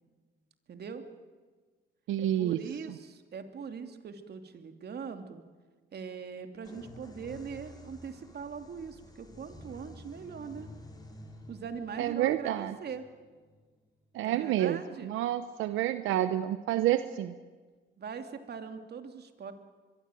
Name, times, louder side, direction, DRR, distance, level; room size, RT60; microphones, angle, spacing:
voice 1, 0.7-1.0 2.2-5.4 5.9-10.7 11.5-13.1 14.2-15.1 18.0-19.5, right 6 dB, 55° right, 7 dB, 2.9 m, -41 dB
voice 2, 2.1-2.6 12.0-12.7 14.1-17.3, right 12 dB, 90° right, 11 dB, 0.9 m, -29 dB
sound 1, 6.6-14.2, left 1 dB, 20° left, 5.3 m, -51 dB
23.5 x 23.5 x 9.3 m, 1.4 s
cardioid pair, 90°, 20 cm